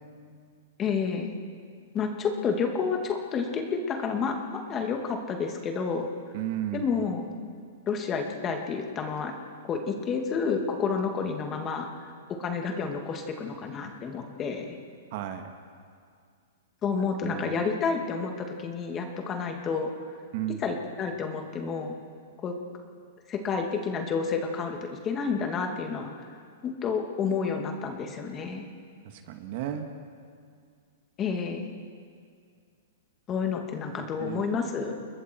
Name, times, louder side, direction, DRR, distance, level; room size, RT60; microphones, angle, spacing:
voice 1, 0.8-1.3 1.9-6.1 6.7-7.3 7.9-9.3 9.7-12.1 12.4-14.8 16.8-19.9 20.6-21.9 22.4-22.5 23.3-26.3 26.6-28.6 31.2-31.6 33.3-34.9, left 5 dB, 25° left, 3 dB, 2.5 m, -30 dB
voice 2, 6.3-6.9 15.1-15.5 17.2-17.5 20.3-20.6 29.3-29.9 34.2-34.4, right 12 dB, 50° right, 6 dB, 2.0 m, -33 dB
29.5 x 21.0 x 4.7 m, 2.2 s
hypercardioid pair, 135°, 0 cm